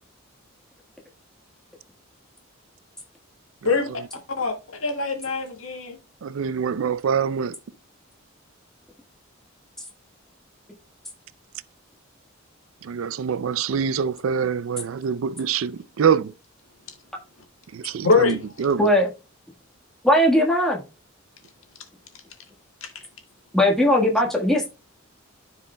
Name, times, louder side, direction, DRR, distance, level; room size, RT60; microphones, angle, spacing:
voice 1, 4.4-6.0 18.0-18.4 22.8-22.9, left 4 dB, 75° left, 1.7 m, -23 dB
voice 2, 6.2-7.6 12.8-16.3 17.7-18.9, right 7 dB, 75° right, 0.4 m, -25 dB
voice 3, 20.0-20.8 23.5-24.7, left 1 dB, ahead, 1.4 m, -18 dB
13.5 x 4.7 x 2.2 m
head